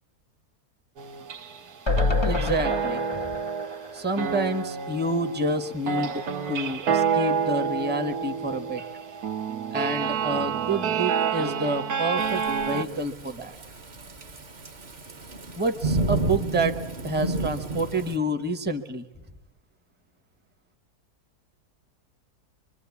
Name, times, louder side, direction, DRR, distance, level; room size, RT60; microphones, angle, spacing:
sound 1, 1.0-1.7 2.0-12.8, right 6 dB, 80° right, 1.6 m, -29 dB
sound 2, 1.9-5.1 5.5-5.6 5.8-5.9, left 3 dB, 25° left, 0.7 m, -28 dB
voice 1, 2.2-3.0 3.9-8.8 9.7-13.6 15.5-16.8 17.0-19.1, right 1 dB, 10° right, 7 dB, 0.9 m, -28 dB
Thunderstorm / Rain, 12.2-18.2, right 2 dB, 35° right, 1.0 m, -31 dB
24.5 x 24.0 x 8.3 m, 0.99 s
omnidirectional pair, 1.6 m